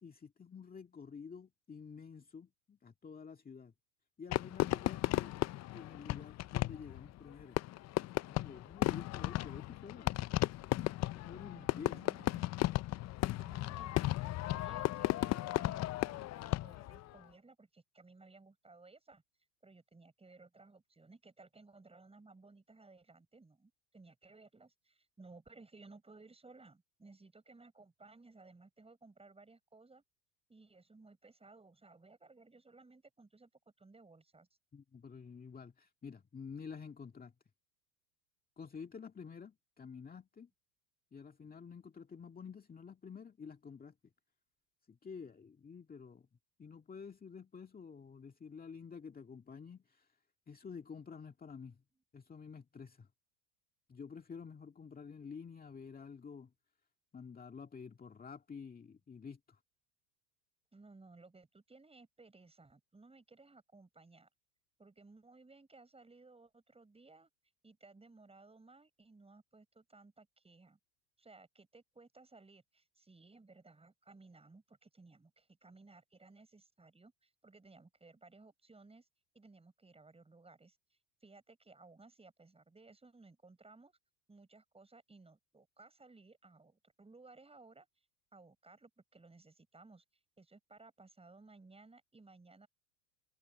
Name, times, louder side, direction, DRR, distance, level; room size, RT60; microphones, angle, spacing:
voice 1, 0.0-3.7 4.2-7.6 8.3-10.2 11.1-12.0 34.7-37.3 38.6-40.5 41.1-43.9 44.9-46.3 46.6-50.2 50.5-51.8 52.1-53.1 53.9-56.5 57.1-59.6, left 6 dB, 15° left, 2.0 m, -50 dB
Fireworks, 4.3-17.0, left 16 dB, 35° left, 0.7 m, -35 dB
voice 2, 11.5-12.4 13.4-19.2 19.6-30.0 30.5-33.5 33.8-34.5 60.7-64.3 64.8-67.3 67.6-70.8 71.2-79.1 79.3-80.8 81.2-84.0 84.3-87.9 88.3-90.0 90.4-92.7, right 3 dB, 10° right, 7.7 m, -59 dB
hypercardioid pair, 105°, 50 cm